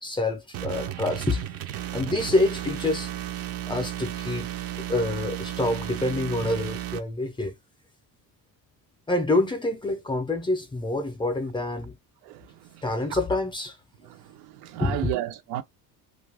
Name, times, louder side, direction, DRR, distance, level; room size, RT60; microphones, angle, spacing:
voice 1, 0.0-1.5 1.9-3.1 3.7-4.5 4.8-7.6 9.1-12.0 12.8-13.8 14.8-15.1, left 2 dB, 15° left, 0.5 m, -27 dB
sound 1, 0.5-7.0, right 12 dB, 40° right, 0.5 m, -34 dB
voice 2, 12.2-13.2 14.0-15.6, right 13 dB, 85° right, 0.7 m, -34 dB
2.7 x 2.3 x 3.3 m
cardioid pair, 140°, 37 cm